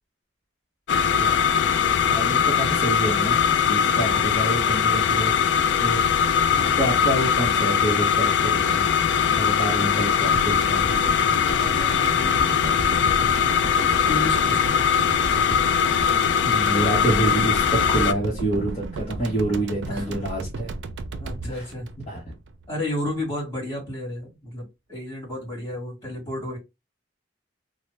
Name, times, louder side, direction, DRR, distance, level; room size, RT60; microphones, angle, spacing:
sound 1, 0.9-18.1, left 7 dB, 80° left, 0.4 m, -21 dB
voice 1, 1.0-1.4 2.1-5.3 5.7-6.0 6.6-8.9 9.3-10.9 16.4-20.7 21.4-21.7 22.1-22.2, right 1 dB, 35° left, 1.0 m, -27 dB
voice 2, 6.5-6.9 11.3-13.6 14.0-15.1 19.9-20.2 21.2-21.9 22.7-26.6, left 1 dB, 15° left, 2.0 m, -33 dB
sound 2, 10.3-22.7 23.0-23.1, right 3 dB, 80° right, 0.4 m, -34 dB
3.1 x 2.1 x 3.2 m
head